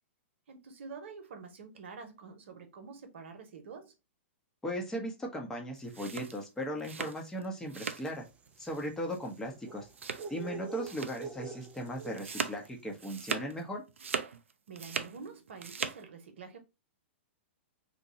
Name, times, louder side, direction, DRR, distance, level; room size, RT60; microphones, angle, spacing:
voice 1, 0.5-3.9 14.7-16.6, right 5 dB, 70° right, 0.9 m, -47 dB
voice 2, 4.6-8.2 8.6-9.9 10.3-13.8, equal, 5° left, 0.8 m, -37 dB
sound 1, 5.8-8.2 8.5-8.9 9.1-9.3 9.9-10.5 10.8-11.3 11.6-13.6 13.9-15.2 15.5-16.0, right 5 dB, 90° right, 0.4 m, -39 dB
sound 2, 8.1-12.7, right 4 dB, 20° right, 0.5 m, -46 dB
2.7 x 2.2 x 4.0 m
hypercardioid pair, 120°, 7 cm